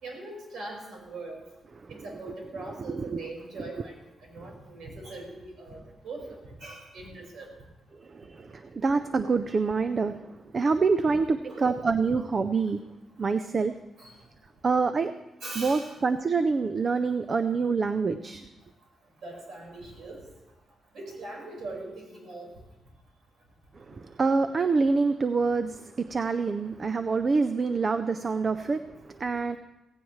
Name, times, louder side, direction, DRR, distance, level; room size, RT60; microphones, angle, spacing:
voice 1, 0.0-1.4 1.9-7.5 11.5-11.8 14.0-14.1 15.4-16.0 19.2-20.3 20.9-22.5, right 2 dB, 70° right, -1 dB, 4.9 m, -41 dB
voice 2, 2.9-3.3 8.0-12.8 13.2-13.7 14.6-15.1 15.6-18.4 23.7-29.6, right 4 dB, 30° right, 10 dB, 0.4 m, -26 dB
16.5 x 16.5 x 3.2 m, 0.99 s
wide cardioid pair, 180°, 0 cm